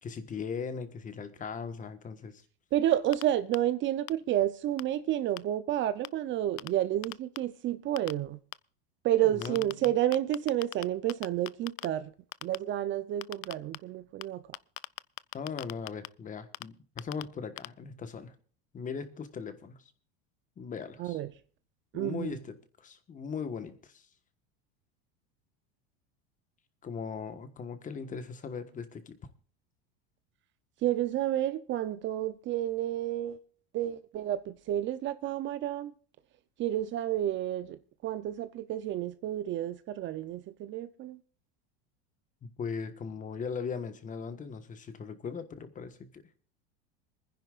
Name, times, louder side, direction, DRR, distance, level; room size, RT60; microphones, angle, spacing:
voice 1, 0.0-2.4 9.2-9.9 15.3-18.4 18.7-19.9 20.6-21.2 21.9-24.1 26.8-29.2 42.4-46.2, left 5 dB, 25° left, 1.4 m, -39 dB
voice 2, 2.7-8.4 9.0-12.1 12.4-14.4 21.0-21.3 21.9-22.4 30.8-33.4 33.7-35.9 36.6-41.2, right 12 dB, 40° right, 0.7 m, -30 dB
sound 1, 3.1-3.2 3.5-3.6 4.1-4.2 4.8-4.9 5.4-5.5 6.0-6.1 6.6-6.7 7.0-7.4 8.0-8.1 8.5-8.6 9.4-9.9 10.1-10.8 11.1-11.9 12.3-12.6 13.2-13.8 14.2-14.3 14.5-16.1 16.5-16.6 17.0-17.2 17.6-17.7, left 24 dB, 75° left, 0.5 m, -38 dB
26.5 x 10.0 x 2.5 m
supercardioid pair, 125°, 31 cm